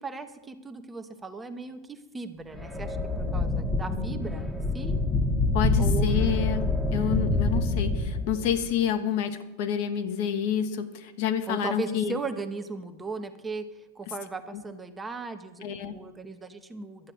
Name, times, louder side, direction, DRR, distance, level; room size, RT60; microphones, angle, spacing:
voice 1, 0.0-5.0 5.8-6.3 6.9-7.2 11.5-13.7 13.9-17.1, right 3 dB, 15° right, 7 dB, 1.0 m, -37 dB
sound 1, 2.5-8.7, left 2 dB, 5° left, 1.2 m, -26 dB
voice 2, 5.5-12.2 14.5-14.6 15.6-15.9, left 9 dB, 50° left, 8 dB, 1.2 m, -29 dB
12.0 x 8.7 x 7.9 m, 1.1 s
figure-of-eight pair, 90°, 0 cm